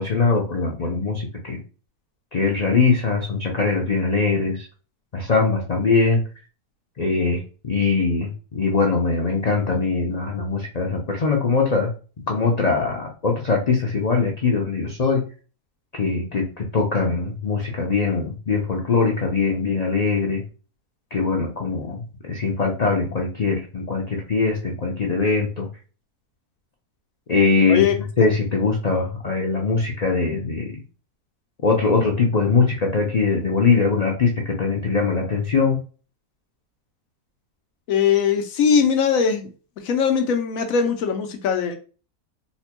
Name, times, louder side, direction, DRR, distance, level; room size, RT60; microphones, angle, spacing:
voice 1, 0.0-1.6 2.3-4.7 5.1-6.2 7.0-11.9 12.3-15.2 16.0-20.4 21.1-25.7 27.3-27.8 28.2-30.8 31.6-35.8, left 4 dB, 85° left, 0 dB, 0.3 m, -21 dB
voice 2, 27.7-28.3 37.9-39.5 39.8-41.7, left 6 dB, 70° left, 5 dB, 1.0 m, -21 dB
4.1 x 2.1 x 2.9 m, 0.36 s
omnidirectional pair, 1.6 m